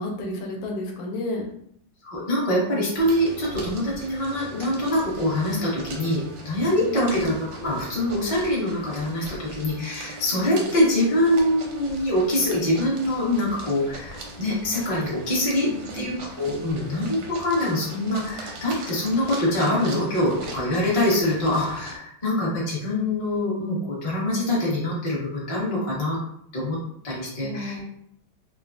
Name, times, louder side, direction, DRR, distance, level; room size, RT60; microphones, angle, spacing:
voice 1, 0.0-1.5 6.8-7.1 15.6-16.0 27.4-27.8, left 1 dB, 80° left, 0 dB, 1.4 m, -32 dB
voice 2, 2.0-26.2 26.5-26.8 27.0-27.8, left 1 dB, 30° left, -6 dB, 0.6 m, -24 dB
sound 1, 2.9-22.0, right 1 dB, 70° right, 1.0 m, -40 dB
3.2 x 2.2 x 2.4 m, 0.71 s
omnidirectional pair, 2.2 m